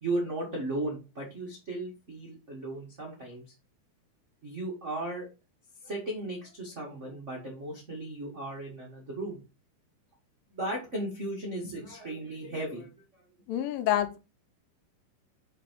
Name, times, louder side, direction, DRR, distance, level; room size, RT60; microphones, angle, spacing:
voice 1, 0.0-3.4 4.4-5.3 5.8-9.4 10.5-12.9, right 2 dB, 75° right, 0.6 m, -36 dB
voice 2, 13.5-14.2, left 11 dB, 80° left, 2.4 m, -27 dB
6.1 x 4.0 x 4.5 m
omnidirectional pair, 4.0 m